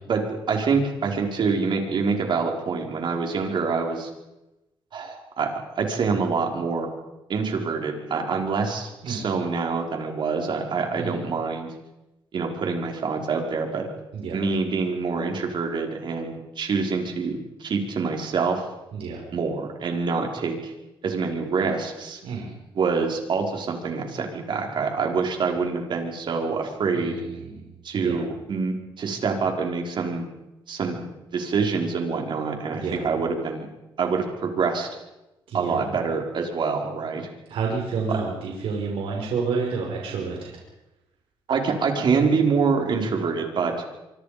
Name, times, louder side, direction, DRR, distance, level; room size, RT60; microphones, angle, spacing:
voice 1, 0.1-4.1 4.9-5.5 5.8-6.9 7.3-11.7 12.3-13.9 14.3-18.6 19.3-20.7 21.0-22.2 22.7-27.2 27.8-30.3 30.7-31.0 31.3-33.7 34.0-34.9 35.5-37.3 38.1-38.2 41.5-43.7, right 5 dB, 55° right, 2 dB, 5.2 m, -26 dB
voice 2, 18.9-19.2 22.2-22.5 26.9-28.2 32.7-33.0 35.5-35.8 37.5-40.5, right 5 dB, 80° right, -1 dB, 5.8 m, -30 dB
25.5 x 25.0 x 5.3 m, 0.97 s
cardioid pair, 95°, 9 cm